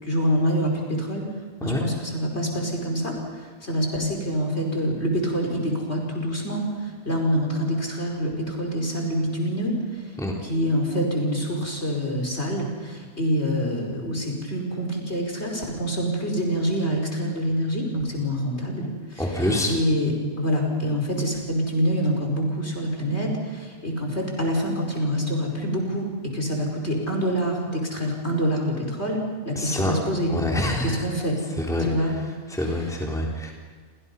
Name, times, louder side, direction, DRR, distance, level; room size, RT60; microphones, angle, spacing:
voice 1, 0.0-1.2 1.6-3.1 3.6-9.8 10.4-19.2 19.7-20.1 20.4-29.2 29.5-30.3 30.8-31.4 31.9-32.1, equal, 45° left, 0 dB, 5.5 m, -26 dB
voice 2, 19.2-19.7 29.5-29.9 30.3-31.0 31.6-32.1 32.5-33.5, left 1 dB, ahead, -2 dB, 3.8 m, -26 dB
29.5 x 26.0 x 5.5 m, 1.5 s
omnidirectional pair, 1.5 m